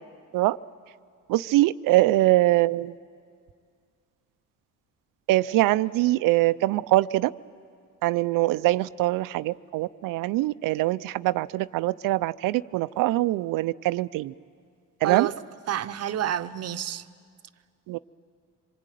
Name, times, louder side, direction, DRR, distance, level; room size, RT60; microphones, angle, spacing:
voice 1, 1.3-2.9 5.3-7.3 8.0-14.3 15.0-15.3 17.9-18.0, right 17 dB, 75° right, 0.6 m, -23 dB
voice 2, 15.0-15.3 15.7-17.0, right 11 dB, 50° right, 0.9 m, -29 dB
26.0 x 23.0 x 9.2 m
cardioid pair, 100°, 33 cm